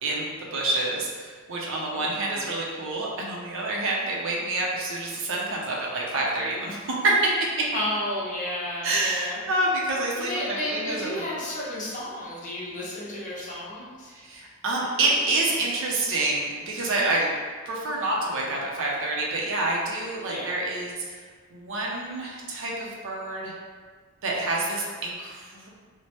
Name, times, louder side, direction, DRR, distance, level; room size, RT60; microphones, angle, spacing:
voice 1, 0.0-7.7 8.8-11.2 14.1-17.3 17.7-21.2 21.5-23.5 24.2-25.7, right 2 dB, 60° right, -3 dB, 0.6 m, -27 dB
voice 2, 1.9-2.5 7.7-9.4 10.1-14.1 20.2-20.5, left 1 dB, 35° left, -7 dB, 0.7 m, -32 dB
3.1 x 2.1 x 2.9 m, 1.5 s
head